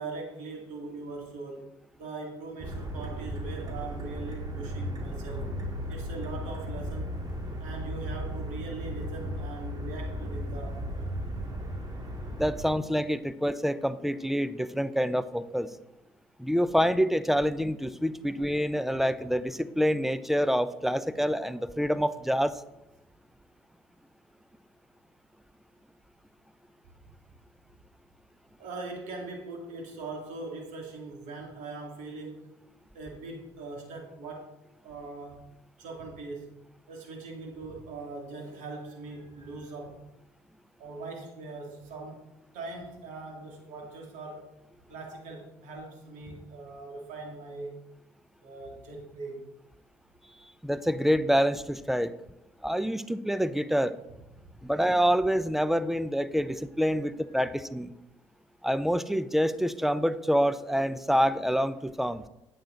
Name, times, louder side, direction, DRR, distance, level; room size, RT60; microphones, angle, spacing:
voice 1, 0.0-1.7 2.0-5.5 5.9-7.1 7.6-11.1 28.6-32.5 32.9-34.6 34.8-35.4 35.8-36.5 36.9-40.0 40.8-42.2 42.5-44.5 44.9-47.8 48.4-49.5 57.4-57.5, right 3 dB, 70° right, 1 dB, 2.4 m, -41 dB
sound 1, 2.6-12.6, equal, 30° right, 2.0 m, -35 dB
voice 2, 12.3-15.7 16.4-22.6 50.6-52.1 52.6-53.9 54.6-57.9 58.6-62.2, equal, ahead, 14 dB, 0.6 m, -27 dB
9.0 x 7.7 x 3.9 m, 0.88 s
hypercardioid pair, 55°, 13 cm